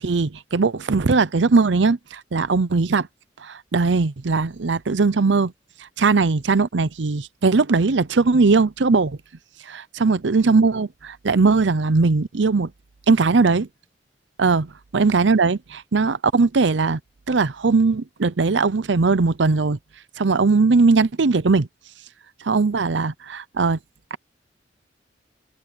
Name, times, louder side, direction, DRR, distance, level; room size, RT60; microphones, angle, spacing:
voice 1, 0.0-3.1 3.4-5.5 6.0-9.2 9.7-12.7 13.1-13.7 14.4-14.7 14.9-17.0 17.3-19.8 20.2-21.7 22.4-23.8 24.1-24.2, right 4 dB, 80° right, 0.7 m, -19 dB
head